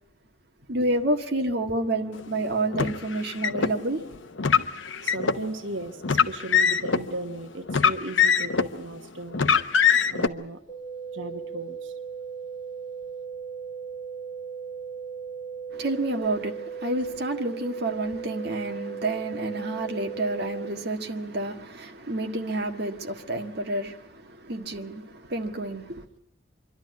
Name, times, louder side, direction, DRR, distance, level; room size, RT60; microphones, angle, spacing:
voice 1, 0.7-4.0 15.7-26.0, right 2 dB, 60° right, 1.6 m, -29 dB
Car, 2.7-3.7 4.4-5.4 6.0-7.0 7.7-8.8 9.3-10.3, left 6 dB, 80° left, 0.9 m, -22 dB
voice 2, 5.0-9.6 10.1-10.6 11.1-12.0, right 2 dB, 90° right, 1.2 m, -36 dB
sound 1, 10.7-20.7, right 6 dB, 30° left, 3.4 m, -37 dB
26.0 x 12.0 x 9.4 m
head